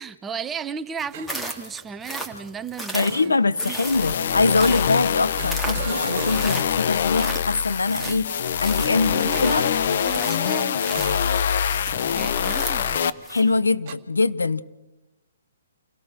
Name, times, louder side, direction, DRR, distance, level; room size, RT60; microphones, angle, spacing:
voice 1, 0.0-3.3 3.6-4.3 8.8-9.7 10.0-10.8 12.1-13.2, right 6 dB, 15° right, 12 dB, 1.0 m, -35 dB
sound 1, 1.0-13.6, right 1 dB, 5° left, 3.2 m, -36 dB
sound 2, 1.1-1.5 3.0-3.8 5.3-6.7 7.9-9.7 10.9-11.4 11.8-12.0 13.9-14.0, right 11 dB, 40° right, 1.8 m, -38 dB
voice 2, 2.9-8.4 8.6-9.7 13.3-14.6, left 3 dB, 90° left, 14 dB, 1.2 m, -23 dB
sound 3, 3.7-13.1, left 8 dB, 55° left, 1.0 m, -24 dB
28.5 x 18.0 x 6.5 m, 0.95 s
hypercardioid pair, 135°, 0 cm